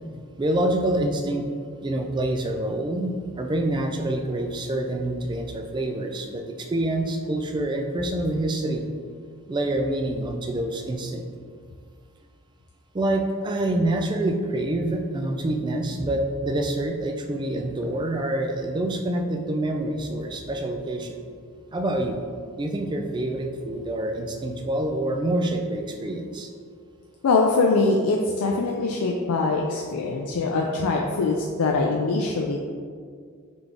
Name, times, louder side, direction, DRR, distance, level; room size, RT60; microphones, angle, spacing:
voice 1, 0.4-1.5 1.8-8.8 9.5-11.2 12.9-21.2 21.7-22.2 22.6-26.5, right 1 dB, 20° right, 4 dB, 0.3 m, -26 dB
voice 2, 27.2-32.6, left 3 dB, 90° left, 0 dB, 0.4 m, -23 dB
4.0 x 3.4 x 3.4 m, 2.1 s
head